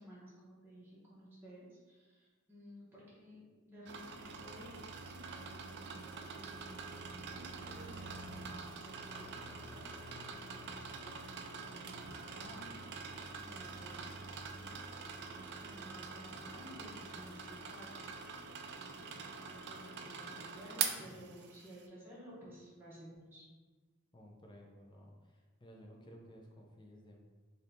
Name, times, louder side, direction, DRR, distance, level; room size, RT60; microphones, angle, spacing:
voice 1, 0.0-14.1 14.5-15.1 15.3-23.4, equal, 10° right, -8 dB, 0.7 m, -55 dB
sound 1, 3.8-21.8, right 5 dB, 55° right, 0.3 m, -45 dB
sound 2, 8.6-12.9, left 2 dB, 80° left, 0.4 m, -56 dB
voice 2, 24.1-27.2, equal, 20° left, 0 dB, 0.5 m, -56 dB
2.7 x 2.7 x 3.3 m, 1.4 s
head